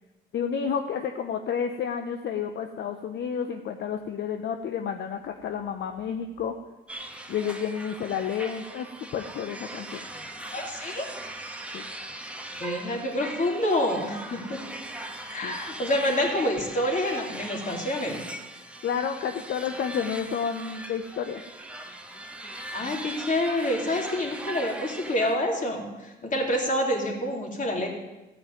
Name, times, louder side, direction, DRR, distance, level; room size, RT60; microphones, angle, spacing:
voice 1, 0.3-6.5 7.3-8.9 9.1-10.0 11.7-11.8 15.4-15.6 18.8-21.4, left 7 dB, 65° left, 6 dB, 0.8 m, -30 dB
sound 1, 6.9-25.3, right 1 dB, 5° right, 1.3 m, -39 dB
voice 2, 10.5-11.1 12.6-14.6 15.3-18.2 22.7-27.9, left 1 dB, 40° left, 1 dB, 3.0 m, -27 dB
14.0 x 5.6 x 9.1 m, 1.1 s
cardioid pair, 90°, 20 cm